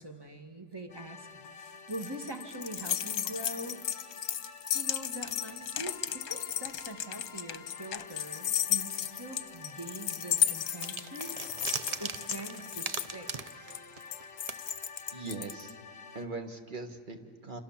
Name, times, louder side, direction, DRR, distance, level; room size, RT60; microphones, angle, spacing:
voice 1, 0.0-1.4 1.9-3.8 4.7-11.4 12.0-13.3, right 1 dB, 15° right, 5 dB, 1.5 m, -43 dB
sound 1, 0.9-16.3, left 4 dB, 40° left, 1.7 m, -49 dB
sound 2, 1.4-15.7, left 10 dB, 65° left, 1.3 m, -34 dB
sound 3, 10.8-14.2 14.5-14.6, right 5 dB, 50° right, 0.4 m, -38 dB
voice 2, 15.1-15.7 16.1-17.6, right 3 dB, 30° right, 6 dB, 1.6 m, -40 dB
29.0 x 27.5 x 7.2 m, 2.4 s
omnidirectional pair, 1.7 m